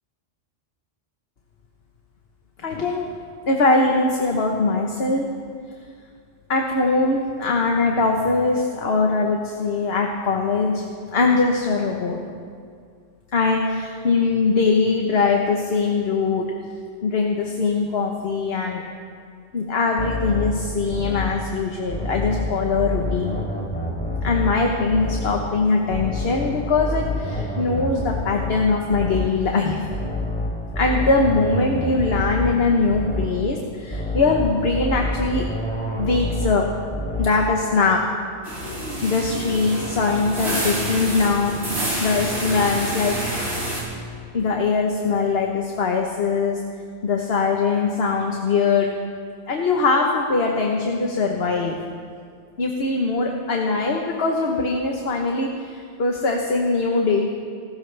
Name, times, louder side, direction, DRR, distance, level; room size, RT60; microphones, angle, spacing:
voice 1, 2.6-3.1 3.5-5.3 6.5-10.8 11.1-12.2 13.3-16.4 17.0-18.8 19.5-23.4 24.2-29.8 30.7-35.4 36.0-36.6 37.2-38.0 39.0-43.1 44.3-46.6 47.0-48.9 49.5-51.8 52.6-57.3, left 3 dB, 60° left, 1 dB, 1.4 m, -21 dB
sound 1, 20.0-21.4 21.9-24.6 24.9-25.4 25.9-29.4 29.9-32.6 32.9-33.4 33.9-36.6 36.9-37.4, left 1 dB, 10° left, 3.4 m, -27 dB
sound 2, 38.4-43.8, right 1 dB, 75° right, 4.6 m, -28 dB
29.5 x 13.5 x 3.4 m, 2.2 s
omnidirectional pair, 1.2 m